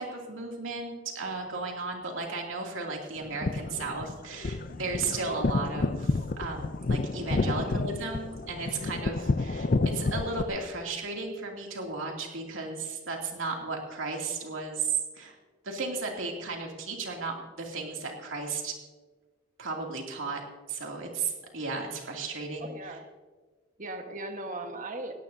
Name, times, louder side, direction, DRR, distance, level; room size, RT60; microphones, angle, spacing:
voice 1, 0.0-15.4 15.6-18.8 19.6-20.4 20.7-22.7, right 4 dB, 80° right, 0 dB, 2.7 m, -35 dB
sound 1, 3.2-10.4, left 3 dB, 45° left, 0.5 m, -30 dB
voice 2, 8.7-9.0 22.6-23.0 23.8-25.1, right 2 dB, 40° right, 5 dB, 1.4 m, -38 dB
17.5 x 17.0 x 2.7 m, 1.4 s
head